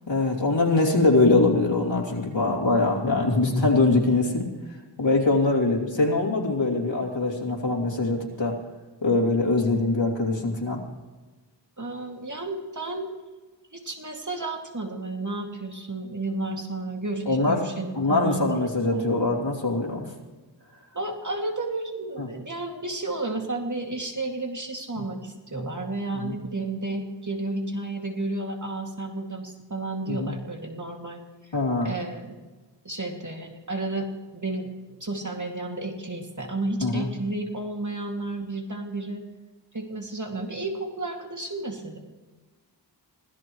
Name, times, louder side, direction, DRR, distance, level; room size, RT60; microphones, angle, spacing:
voice 1, 0.1-4.5 5.0-8.5 9.0-10.8 17.3-17.6 17.9-20.1 22.2-22.3 24.9-25.0 26.1-26.3 30.1-30.3 31.5-31.9 36.8-37.1, left 3 dB, 85° left, -2 dB, 2.9 m, -23 dB
voice 2, 11.8-13.0 13.7-19.0 20.9-31.5 31.8-32.4 32.8-34.7 35.0-39.2 39.7-42.0, right 2 dB, 40° right, 2 dB, 2.4 m, -32 dB
25.0 x 16.0 x 3.1 m, 1.3 s
wide cardioid pair, 60°, 44 cm